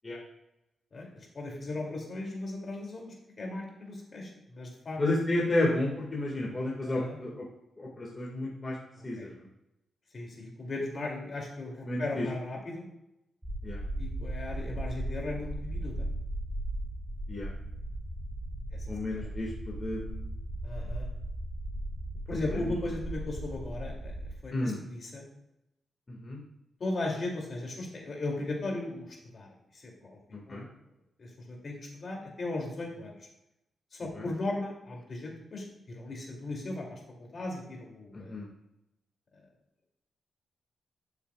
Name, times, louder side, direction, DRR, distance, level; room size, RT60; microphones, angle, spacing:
voice 1, 0.9-3.0 3.4-5.0 6.8-7.2 9.0-9.3 10.1-12.9 14.0-16.1 18.7-18.9 19.1-19.2 20.6-21.1 22.3-24.1 24.4-25.3 26.8-29.5 29.7-30.2 30.5-30.6 31.2-33.3 33.9-38.4, left 2 dB, 45° left, -1 dB, 2.6 m, -37 dB
voice 2, 5.0-7.4 7.8-8.7 9.0-9.3 11.9-12.3 13.6-13.8 17.3-17.5 18.9-20.2 22.5-22.6 24.5-24.8 26.1-26.4 30.5-30.7 34.2-34.3 38.3-38.5, left 1 dB, 25° left, -4 dB, 1.8 m, -31 dB
sound 1, 13.4-24.4, right 1 dB, 5° right, 3.1 m, -37 dB
12.5 x 7.0 x 2.4 m, 0.87 s
cardioid pair, 110°, 0 cm